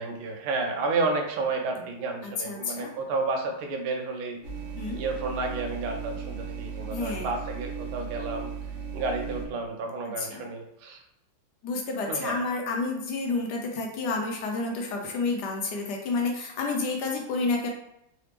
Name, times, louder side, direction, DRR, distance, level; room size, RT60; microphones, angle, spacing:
voice 1, 0.0-4.4 4.9-8.5 8.9-11.0 12.1-12.4, right 3 dB, 80° right, 3 dB, 1.5 m, -31 dB
voice 2, 2.2-2.9 4.8-5.0 6.9-7.3 10.2-10.4 11.6-17.7, left 3 dB, 70° left, 1 dB, 1.0 m, -30 dB
sound 1, 4.4-9.5, right 6 dB, 60° right, 0.8 m, -36 dB
3.9 x 2.9 x 3.3 m, 0.82 s
omnidirectional pair, 2.3 m